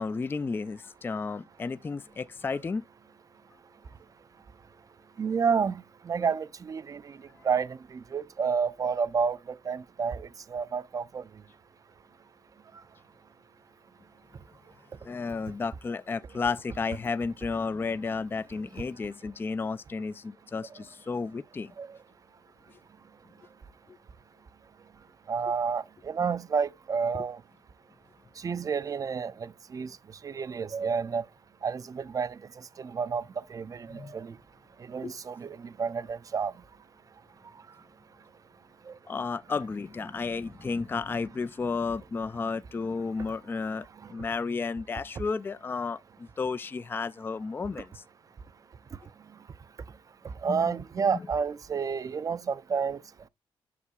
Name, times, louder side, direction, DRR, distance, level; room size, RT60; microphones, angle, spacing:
voice 1, 0.0-2.8 15.0-21.7 23.9-24.0 33.9-34.1 35.0-35.1 39.1-48.0 50.5-50.8 51.1-51.2, left 4 dB, 20° left, 0.3 m, -32 dB
voice 2, 5.2-7.1 7.4-9.4 9.7-11.2 21.8-21.9 25.3-27.4 28.4-29.9 30.2-31.2 31.6-32.3 32.8-33.2 33.5-34.3 34.9-36.5 50.4-53.0, right 6 dB, 35° right, 0.5 m, -30 dB
8.4 x 6.4 x 2.3 m
cardioid pair, 100°, 10 cm